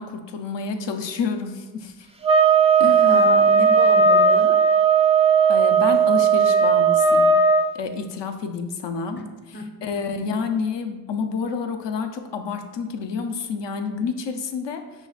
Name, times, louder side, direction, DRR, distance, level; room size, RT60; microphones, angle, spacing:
voice 1, 0.0-2.1 2.8-3.2 5.5-7.3 7.7-9.2 9.8-14.8, left 5 dB, 65° left, 6 dB, 0.6 m, -29 dB
sound 1, 2.2-7.7, right 5 dB, 15° right, 0.4 m, -16 dB
voice 2, 3.0-4.6 9.2-10.0, left 1 dB, 25° left, 4 dB, 0.7 m, -32 dB
5.5 x 3.1 x 2.4 m, 1.2 s
cardioid pair, 40°, 47 cm